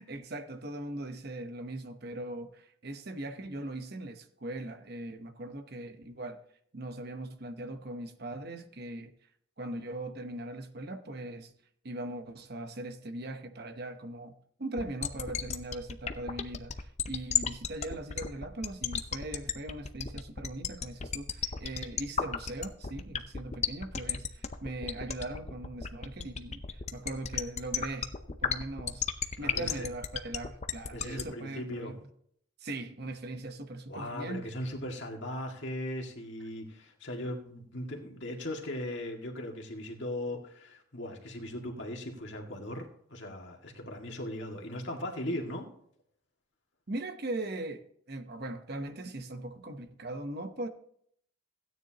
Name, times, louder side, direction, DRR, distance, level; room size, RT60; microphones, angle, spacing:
voice 1, 0.0-6.4 6.7-9.1 9.6-11.5 11.8-14.3 14.6-28.1 28.4-29.0 29.4-32.0 32.6-34.5 46.9-50.7, right 2 dB, 50° right, 0.9 m, -40 dB
sound 1, 14.8-31.2, left 7 dB, 30° left, 0.6 m, -32 dB
voice 2, 29.4-29.9 30.9-32.0 33.9-45.7, left 1 dB, 55° left, 2.0 m, -38 dB
16.0 x 9.4 x 2.9 m
head